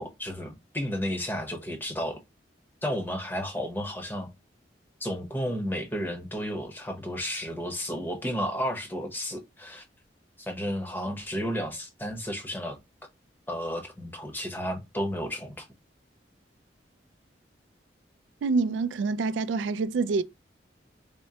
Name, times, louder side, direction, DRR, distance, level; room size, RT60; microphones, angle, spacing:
voice 1, 0.0-2.2 2.8-4.3 5.0-9.8 10.4-12.8 13.5-15.7, equal, 10° left, 0.8 m, -32 dB
voice 2, 18.4-20.2, right 4 dB, 85° right, 0.3 m, -26 dB
3.6 x 2.1 x 4.1 m
head